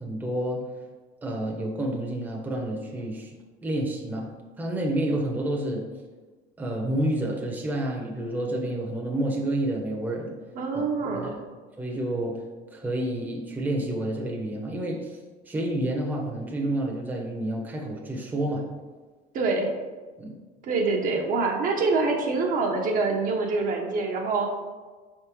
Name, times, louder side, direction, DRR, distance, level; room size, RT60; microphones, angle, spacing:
voice 1, 0.0-0.6 1.2-3.3 3.6-4.3 4.6-5.8 6.6-10.3 11.1-11.4 11.8-12.4 12.7-15.2 15.5-18.6 20.2-20.3, right 1 dB, 10° right, -1 dB, 0.7 m, -29 dB
voice 2, 10.6-11.3 19.3-19.7 20.6-24.5, right 3 dB, 50° right, 1 dB, 0.7 m, -25 dB
4.5 x 3.5 x 3.0 m, 1.4 s
cardioid pair, 115°, 18 cm